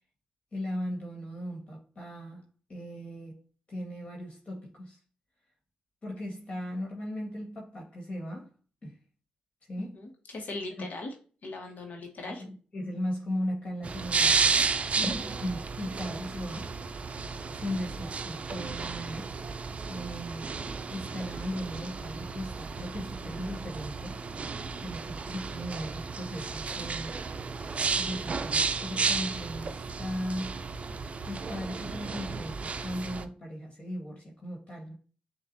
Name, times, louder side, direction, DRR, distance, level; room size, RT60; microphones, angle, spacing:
voice 1, 0.5-3.4 3.7-5.0 6.0-8.5 8.8-9.0 9.7-10.0 10.7-10.9 12.0-12.1 12.4-14.6 15.0-16.7 17.5-19.3 19.9-20.4 20.9-24.2 24.8-27.2 28.0-30.6 31.2-35.0, equal, 40° left, 1.7 m, -37 dB
voice 2, 9.9-11.1 11.4-12.4 14.9-15.0, left 2 dB, 60° left, 1.1 m, -39 dB
sound 1, 13.8-33.2, right 4 dB, 45° right, 0.4 m, -32 dB
6.6 x 2.4 x 2.6 m
cardioid pair, 60°, 3 cm